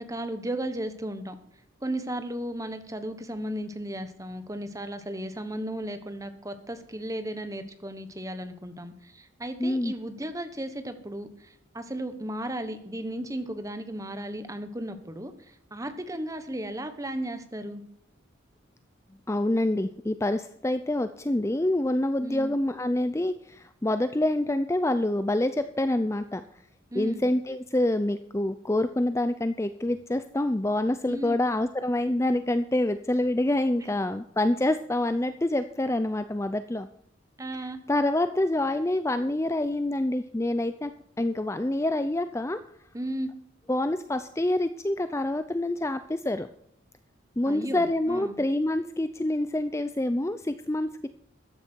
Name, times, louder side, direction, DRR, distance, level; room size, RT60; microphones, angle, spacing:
voice 1, 0.0-1.3 1.8-17.8 22.2-22.6 26.9-27.3 31.0-31.4 37.4-37.8 42.9-43.3 47.4-48.4, right 1 dB, 15° right, 9 dB, 1.2 m, -35 dB
voice 2, 9.6-9.9 19.3-26.4 26.9-36.9 37.9-40.9 41.2-42.6 43.7-46.5 47.4-51.1, left 1 dB, 15° left, 11 dB, 0.4 m, -26 dB
14.0 x 10.5 x 4.6 m, 0.69 s
head